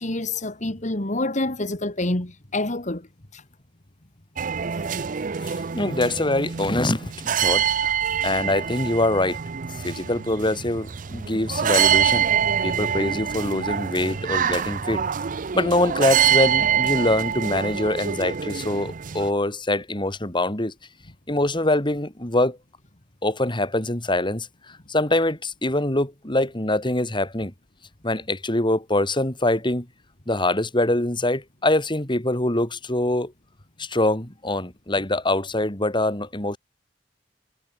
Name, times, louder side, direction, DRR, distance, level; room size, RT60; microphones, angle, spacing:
voice 1, 0.0-3.1 3.3-3.4, left 2 dB, 45° left, 2.4 m, -27 dB
sound 1, 4.4-19.3, right 8 dB, 50° right, 0.6 m, -25 dB
voice 2, 5.4-8.0 8.2-9.4 9.8-12.3 12.6-15.0 15.5-20.7 21.3-22.6 23.2-24.5 24.9-27.5 28.0-29.9 30.3-33.3 33.8-36.6, left 1 dB, 25° left, 4.1 m, -24 dB
head